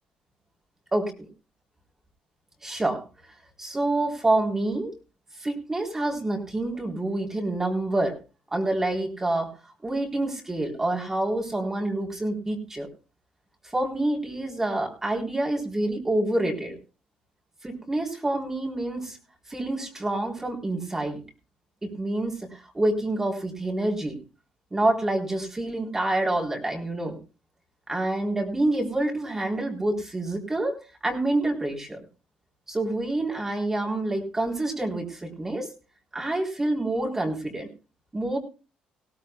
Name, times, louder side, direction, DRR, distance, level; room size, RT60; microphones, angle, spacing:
voice 1, 2.6-3.0 3.6-4.9 5.4-8.1 8.5-9.5 9.8-12.9 13.7-16.7 17.6-19.2 19.5-21.2 21.8-24.2 24.7-27.2 27.9-30.8 31.0-32.0 32.7-35.7 36.1-37.7 38.1-38.4, right 2 dB, 15° right, 0 dB, 3.8 m, -27 dB
20.0 x 16.5 x 2.3 m, 0.32 s
cardioid pair, 105°, 3 cm